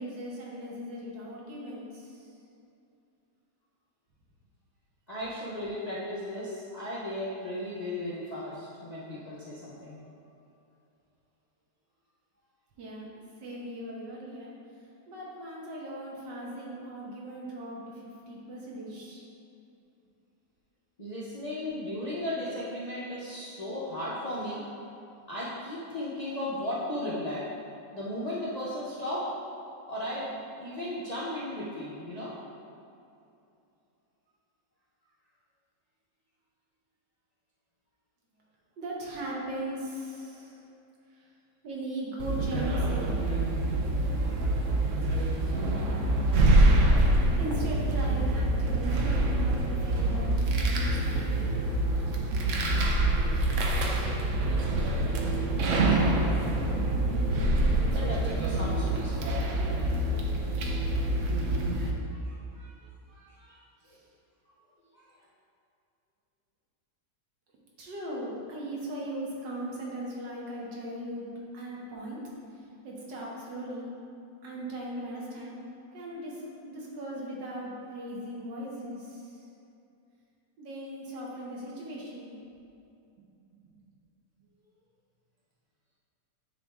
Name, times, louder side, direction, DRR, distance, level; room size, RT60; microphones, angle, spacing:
voice 1, 0.0-2.3 12.8-13.1 13.4-14.5 15.1-19.2 38.8-40.6 41.1-41.3 41.6-43.4 47.4-51.3 63.8-64.0 67.8-71.3 71.5-72.2 72.5-73.9 74.4-75.5 75.9-79.5 80.6-82.4 83.6-83.7, right 1 dB, 80° right, -4 dB, 1.8 m, -38 dB
voice 2, 5.1-10.0 21.0-24.7 25.3-27.5 27.9-29.3 29.9-32.4 57.9-60.0 61.1-61.3 62.1-62.7 63.1-63.6 64.9-65.1, left 1 dB, 45° left, -8 dB, 0.5 m, -36 dB
sound 1, 42.2-61.9, right 1 dB, 65° right, 0.8 m, -26 dB
9.3 x 3.4 x 3.5 m, 2.7 s
omnidirectional pair, 1.9 m